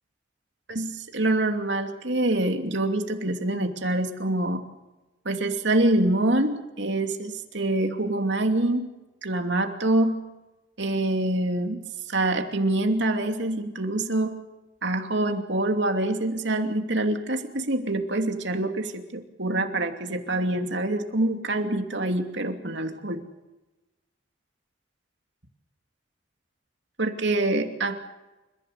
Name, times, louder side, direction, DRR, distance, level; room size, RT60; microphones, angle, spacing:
voice 1, 0.7-4.6 5.2-8.9 9.2-10.2 10.8-11.8 12.1-14.4 14.8-23.2 27.0-28.1, right 2 dB, 70° right, 5 dB, 2.7 m, -25 dB
29.5 x 15.5 x 8.3 m, 1.0 s
head